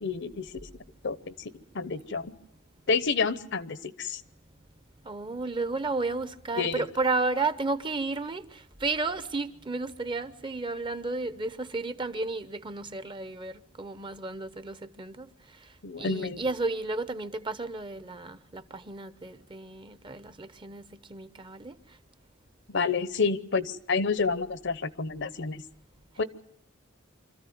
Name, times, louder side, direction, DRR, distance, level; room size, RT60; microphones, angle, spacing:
voice 1, 0.0-0.5 1.0-2.4 2.9-4.2 6.6-6.8 15.8-16.4 22.7-25.6 26.2-26.3, left 4 dB, 60° left, 0.9 m, -29 dB
voice 2, 5.0-15.3 15.6-15.7 16.0-21.8, right 3 dB, 25° right, 0.8 m, -33 dB
25.5 x 14.0 x 9.3 m
head